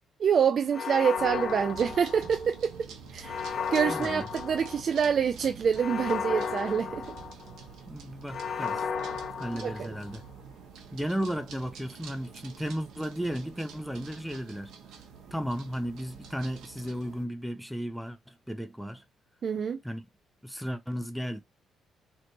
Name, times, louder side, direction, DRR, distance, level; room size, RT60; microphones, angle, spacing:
voice 1, 0.2-2.7 3.1-3.4 3.7-7.1 9.6-9.9 19.4-19.8, right 7 dB, 55° right, 0.4 m, -26 dB
sound 1, 0.7-2.6 3.2-5.1 5.8-7.6 8.3-10.2, left 6 dB, 45° left, 0.9 m, -34 dB
sound 2, 1.2-17.2, right 6 dB, 85° right, 1.2 m, -47 dB
voice 2, 3.8-4.3 7.9-8.8 9.4-10.2 10.9-14.7 15.3-19.0 19.8-20.1 20.4-21.4, equal, ahead, 0.5 m, -34 dB
3.9 x 3.4 x 3.1 m
cardioid pair, 90°, 0 cm